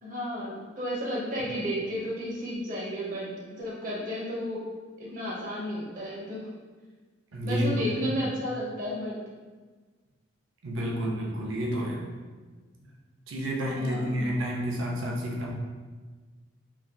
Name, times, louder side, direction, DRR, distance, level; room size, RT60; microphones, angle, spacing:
voice 1, 0.0-4.6 5.0-6.4 7.4-9.2 13.7-14.2, equal, 40° right, -6 dB, 0.9 m, -33 dB
voice 2, 7.3-8.1 10.6-12.1 12.8-12.9 13.3-15.5, equal, 80° right, -2 dB, 0.5 m, -30 dB
3.1 x 2.5 x 2.2 m, 1.4 s
head